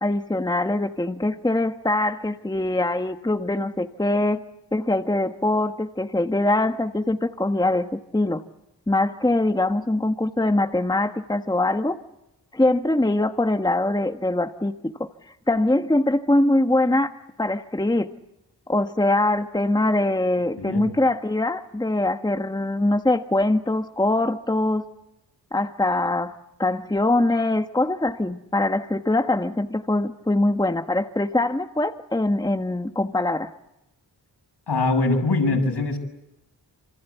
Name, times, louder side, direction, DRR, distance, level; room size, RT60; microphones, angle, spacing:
voice 1, 0.0-4.4 4.7-8.4 8.9-12.0 12.5-15.1 15.5-17.1 17.4-18.1 18.7-24.9 25.5-33.5, left 2 dB, 10° left, 7 dB, 1.2 m, -23 dB
voice 2, 20.6-20.9 34.7-36.0, left 2 dB, 75° left, 3 dB, 7.2 m, -22 dB
27.0 x 26.5 x 8.3 m, 0.90 s
wide cardioid pair, 90°, 41 cm